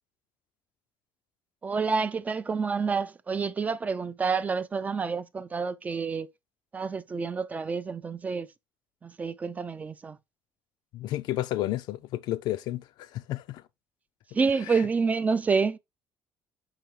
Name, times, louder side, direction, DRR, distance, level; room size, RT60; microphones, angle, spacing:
voice 1, 1.6-6.3 6.7-8.5 9.0-10.2 14.3-15.8, right 5 dB, 20° right, 0.3 m, -28 dB
voice 2, 10.9-13.6 14.7-14.8, left 14 dB, 70° left, 0.5 m, -32 dB
5.9 x 5.7 x 3.1 m
cardioid pair, 145°, 7 cm